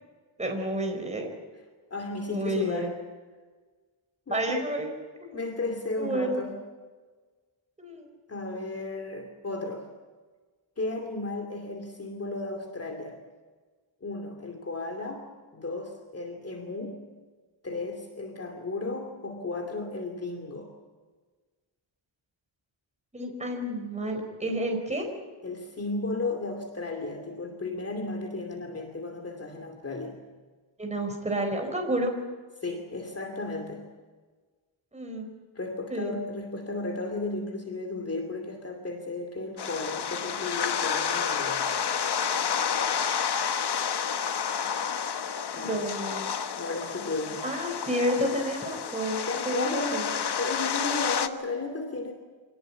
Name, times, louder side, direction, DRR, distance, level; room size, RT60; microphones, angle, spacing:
voice 1, 0.4-1.3 2.3-2.9 4.3-4.9 5.2-5.4 6.0-6.4 7.8-8.1 23.1-25.1 30.8-32.1 34.9-35.2 35.9-36.1 44.3-44.4 45.6-46.3 47.4-50.1, right 1 dB, 15° right, 3 dB, 4.3 m, -30 dB
voice 2, 1.9-3.0 4.3-4.6 5.3-6.5 8.3-9.9 10.8-13.2 14.0-15.3 15.5-17.1 17.6-20.7 25.4-30.2 32.6-33.8 35.5-41.7 45.5-45.8 46.6-47.5 49.3-50.1 50.4-52.1, left 3 dB, 30° left, 3 dB, 2.6 m, -34 dB
sound 1, 39.6-51.3, left 7 dB, 55° left, 1.2 m, -30 dB
25.5 x 18.5 x 8.7 m, 1.4 s
wide cardioid pair, 175°, 48 cm